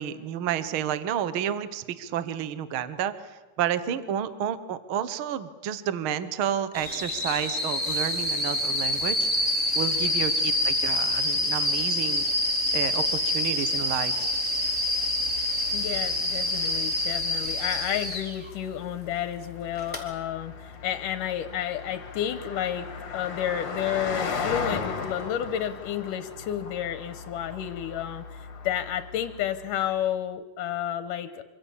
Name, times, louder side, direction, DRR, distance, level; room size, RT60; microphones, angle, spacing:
voice 1, 0.0-3.1 3.6-9.3 9.7-12.3 12.7-14.1, right 9 dB, 65° right, 13 dB, 1.3 m, -30 dB
sound 1, 6.7-18.3 19.8-20.0, left 1 dB, 5° right, 3.5 m, -26 dB
Car passing by, 14.1-29.9, left 5 dB, 55° left, 3.0 m, -38 dB
voice 2, 15.7-22.9 23.1-31.4, left 10 dB, 85° left, 10 dB, 2.5 m, -31 dB
26.0 x 25.0 x 7.2 m, 1.2 s
omnidirectional pair, 3.7 m